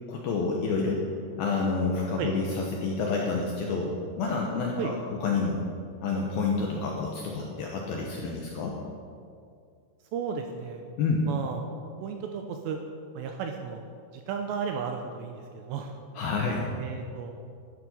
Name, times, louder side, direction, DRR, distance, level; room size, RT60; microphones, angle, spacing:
voice 1, 0.1-1.0 1.4-5.6 6.0-8.8 11.0-11.3 16.1-16.7, left 4 dB, 75° left, -1 dB, 2.2 m, -29 dB
voice 2, 10.1-10.8 11.3-11.6 12.0-12.8 13.1-16.0 16.8-17.3, right 6 dB, 80° right, 4 dB, 2.6 m, -34 dB
13.0 x 11.0 x 5.6 m, 2.3 s
omnidirectional pair, 5.6 m